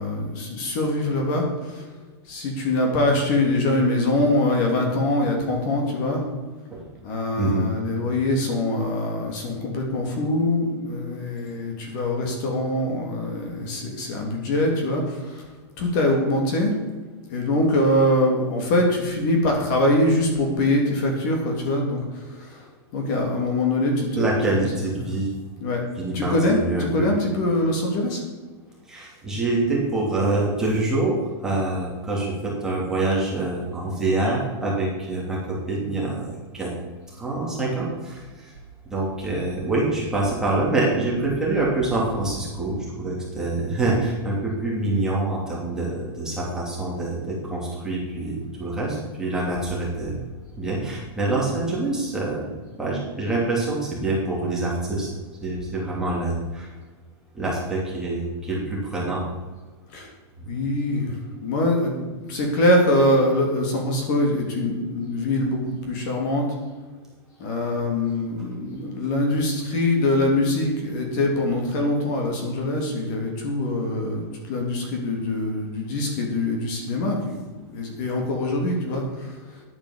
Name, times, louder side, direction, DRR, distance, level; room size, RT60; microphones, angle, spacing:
voice 1, 0.0-1.9 2.3-6.2 7.0-15.4 15.8-16.7 17.3-22.7 22.9-24.3 24.6-25.1 25.6-25.8 26.1-28.2 59.9-60.1 60.5-61.2 61.4-66.5 67.4-77.4 77.7-79.4, left 1 dB, 45° left, 1 dB, 3.1 m, -23 dB
voice 2, 24.2-25.3 26.0-27.1 28.9-31.2 31.4-35.4 35.7-36.3 36.5-36.7 37.2-38.2 38.9-50.1 50.6-52.5 52.8-55.1 55.4-56.7 57.4-59.2, right 2 dB, 5° right, -5 dB, 2.7 m, -25 dB
10.5 x 8.7 x 7.3 m, 1.3 s
supercardioid pair, 170°, 14 cm